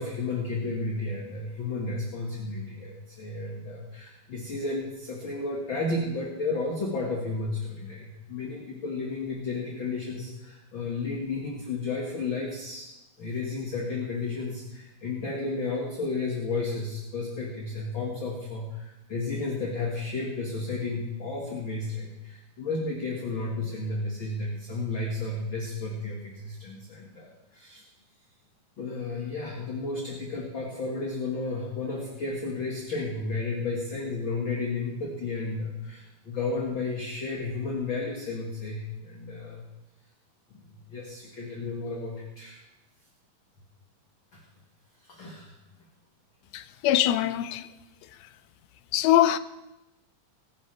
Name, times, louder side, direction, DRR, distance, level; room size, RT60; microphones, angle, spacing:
voice 1, 0.0-27.8 28.8-39.6 40.5-42.6 44.3-44.4 45.0-45.6, left 3 dB, 40° left, 1.9 m, -33 dB
voice 2, 46.5-47.7 48.9-49.4, left 12 dB, 85° left, 2.5 m, -23 dB
21.0 x 10.5 x 3.4 m
omnidirectional pair, 4.3 m